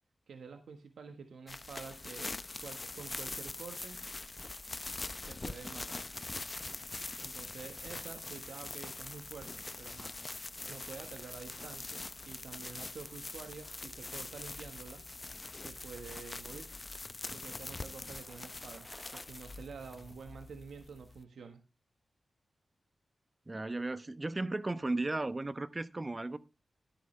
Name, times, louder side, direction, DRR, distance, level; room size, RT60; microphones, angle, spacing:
voice 1, 0.3-4.0 5.3-6.0 7.2-10.2 10.7-15.0 15.6-16.7 17.3-21.6, right 5 dB, 90° right, 1.4 m, -49 dB
sound 1, 1.5-21.2, left 2 dB, 35° left, 0.6 m, -43 dB
Bicycle, 16.5-20.7, equal, 5° right, 1.2 m, -58 dB
voice 2, 23.5-26.4, right 2 dB, 30° right, 0.9 m, -35 dB
12.5 x 10.5 x 3.3 m
cardioid pair, 65°, 0 cm